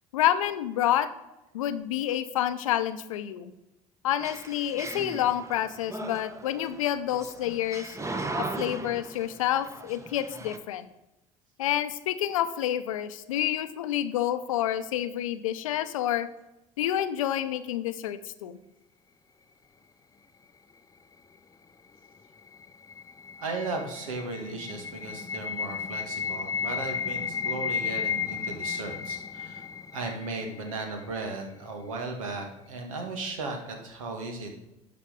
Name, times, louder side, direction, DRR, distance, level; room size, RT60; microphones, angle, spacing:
voice 1, 0.1-1.1 1.5-3.5 4.0-8.0 8.4-10.9 11.6-16.3 16.8-18.6, left 11 dB, 85° left, 12 dB, 0.6 m, -28 dB
sound 1, 4.2-10.6, right 2 dB, 15° right, 1.1 m, -38 dB
sound 2, 22.1-31.1, left 7 dB, 20° left, 0.5 m, -34 dB
voice 2, 23.4-29.6 29.9-34.5, right 3 dB, 85° right, 3 dB, 1.7 m, -36 dB
11.5 x 5.1 x 4.9 m, 0.93 s
hypercardioid pair, 65°, 17 cm